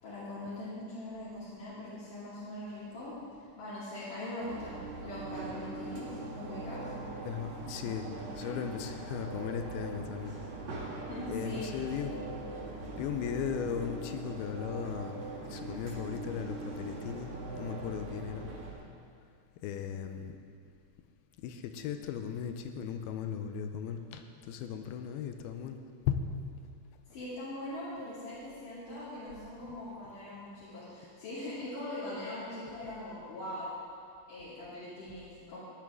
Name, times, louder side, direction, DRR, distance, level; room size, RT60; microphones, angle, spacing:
voice 1, 0.0-3.2 3.6-6.9 11.1-11.7 27.1-33.7 34.3-35.6, left 1 dB, 55° left, -11 dB, 3.9 m, -41 dB
sound 1, 4.4-18.7, right 2 dB, 50° right, 3.3 m, -41 dB
voice 2, 7.3-8.1 8.4-10.3 11.3-12.2 12.9-15.2 15.5-17.3 17.6-18.5 19.6-20.4 21.4-26.3, left 8 dB, 85° left, 7 dB, 2.4 m, -37 dB
16.5 x 11.0 x 3.7 m, 2.3 s
omnidirectional pair, 4.8 m